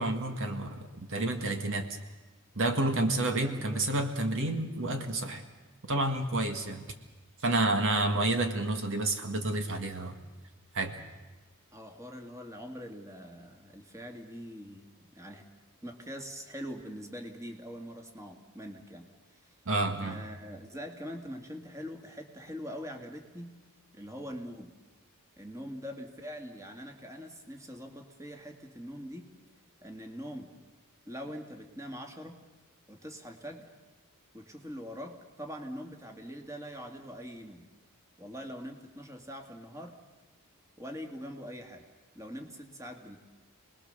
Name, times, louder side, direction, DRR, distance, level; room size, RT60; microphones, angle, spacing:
voice 1, 0.0-1.9 2.6-5.4 5.9-6.8 7.4-10.2 10.7-10.9 19.7-20.2, right 2 dB, 60° right, 6 dB, 1.9 m, -29 dB
voice 2, 3.4-3.8 11.7-14.9 15.1-15.4 15.8-19.5 20.0-23.6 23.9-24.7 25.4-29.3 29.8-30.5 31.0-32.4 32.9-33.7 34.3-37.7 38.2-40.0 40.8-41.8 42.1-43.2, equal, 15° right, 4 dB, 2.2 m, -43 dB
29.5 x 20.5 x 6.8 m, 1.2 s
head